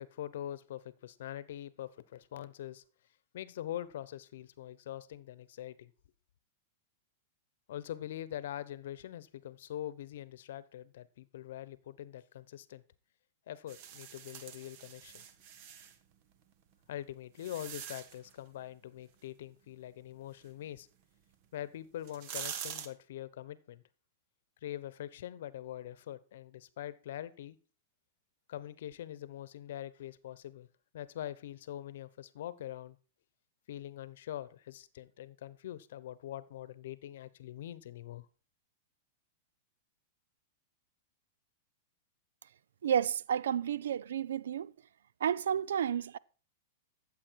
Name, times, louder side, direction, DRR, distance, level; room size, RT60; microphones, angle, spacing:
voice 1, 0.0-2.8 3.3-5.9 7.7-12.8 13.5-15.2 16.9-20.9 21.5-23.8 24.6-27.6 28.5-30.7 30.9-33.0 33.7-38.3, left 12 dB, 70° left, 0.9 m, -43 dB
sound 1, 13.7-16.0 16.7-18.3 21.3-21.4 21.9-22.9, right 9 dB, 50° right, 1.5 m, -44 dB
voice 2, 42.8-44.7 45.2-46.2, right 8 dB, 85° right, 0.5 m, -31 dB
13.0 x 7.6 x 4.7 m
hypercardioid pair, 130°, 0 cm